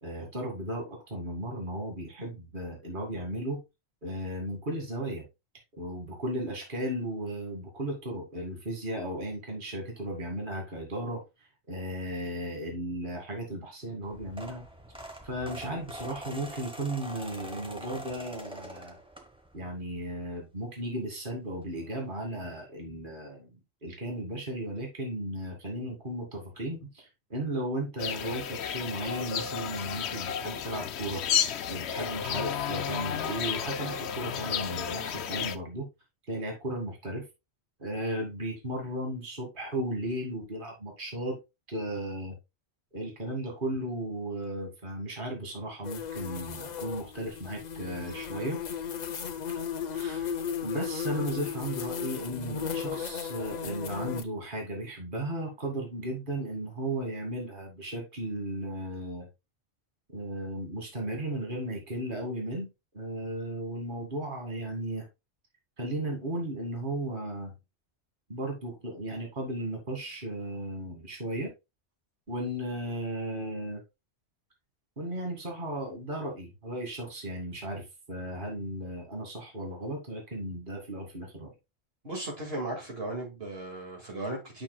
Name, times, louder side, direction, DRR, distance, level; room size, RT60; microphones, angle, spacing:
voice 1, 0.0-3.6 4.0-5.2 5.8-11.2 11.7-14.6 15.2-19.0 19.5-23.5 23.8-31.2 31.7-35.9 36.3-37.3 37.8-41.4 41.7-42.4 42.9-48.6 49.9-50.3 50.6-59.3 60.1-62.7 62.9-65.0 65.8-67.5 68.3-71.5 72.3-73.8 75.0-81.5, right 1 dB, 50° right, 2.3 m, -35 dB
sound 1, 14.0-19.7 20.1-20.4 21.6-21.7 21.9-22.1 22.4-22.5, right 1 dB, 5° right, 1.0 m, -44 dB
sound 2, 28.0-35.6, left 8 dB, 85° left, 0.9 m, -32 dB
sound 3, 45.8-54.2, left 7 dB, 50° left, 0.7 m, -35 dB
voice 2, 82.0-84.6, right 2 dB, 65° right, 2.3 m, -36 dB
8.6 x 6.0 x 2.2 m
omnidirectional pair, 1.1 m